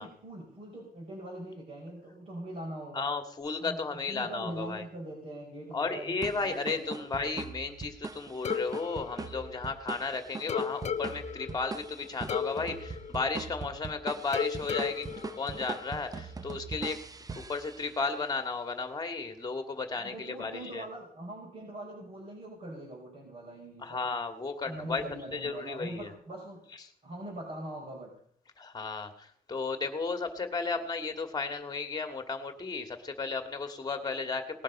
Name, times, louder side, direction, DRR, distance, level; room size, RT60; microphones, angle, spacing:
voice 1, 0.0-3.1 3.6-3.8 4.1-7.3 20.0-24.1 24.7-26.6 27.0-28.2, right 1 dB, 40° right, -3 dB, 5.6 m, -42 dB
voice 2, 2.9-4.8 5.7-17.0 17.3-20.8 23.8-25.0 25.3-26.1 28.6-34.6, left 4 dB, 25° left, 7 dB, 2.0 m, -34 dB
sound 1, 6.2-18.2, right 4 dB, 25° right, 0.7 m, -42 dB
sound 2, 8.5-10.0 10.5-13.9 14.3-16.3, left 7 dB, 45° left, 0.5 m, -36 dB
19.0 x 11.0 x 5.5 m, 0.62 s
cardioid pair, 135°, 16 cm